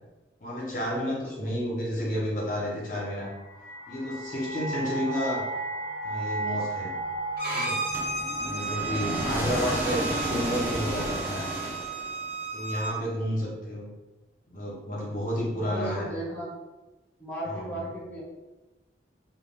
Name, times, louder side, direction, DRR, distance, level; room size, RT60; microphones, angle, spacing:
voice 1, 0.4-3.3 3.9-5.4 6.0-7.0 7.5-7.8 8.4-11.5 12.5-13.9 14.5-16.1 17.5-17.9, equal, 45° left, -4 dB, 0.6 m, -31 dB
voice 2, 1.1-1.5 5.1-5.3 15.5-16.6 17.2-18.2, right 1 dB, 10° left, -8 dB, 0.7 m, -37 dB
sound 1, 3.2-10.1, right 2 dB, 85° left, 0.4 m, -35 dB
Bowed string instrument, 7.4-12.9, right 3 dB, 55° right, 0.8 m, -34 dB
sound 2, 7.9-12.3, equal, 10° right, 0.3 m, -32 dB
2.3 x 2.2 x 3.3 m, 1.1 s
head